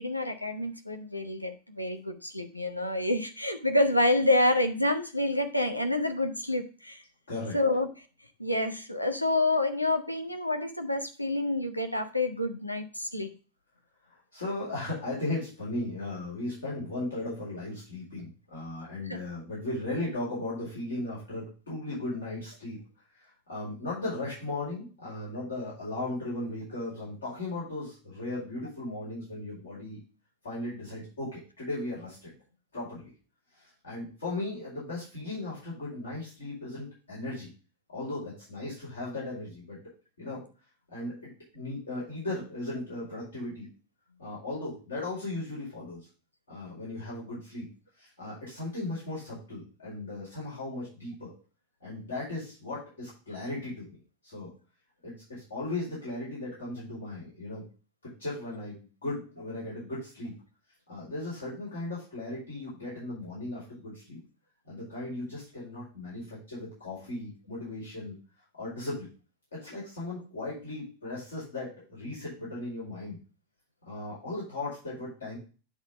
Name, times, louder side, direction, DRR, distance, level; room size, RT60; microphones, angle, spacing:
voice 1, 0.0-7.0 7.5-7.9 8.4-13.3 19.0-19.2, left 1 dB, 85° left, 6 dB, 1.0 m, -28 dB
voice 2, 14.3-22.8 23.2-30.0 30.4-32.3 32.7-33.1 33.5-37.5 37.9-39.8 40.2-40.5 40.9-43.7 44.2-46.0 46.5-47.7 48.0-51.3 51.8-53.9 54.2-54.5 55.0-57.6 58.0-60.3 60.9-64.2 64.7-68.1 68.6-69.1 69.5-73.2 73.8-75.4, left 2 dB, 70° left, -8 dB, 4.8 m, -37 dB
9.5 x 4.0 x 5.0 m, 0.35 s
figure-of-eight pair, 90°, 0 cm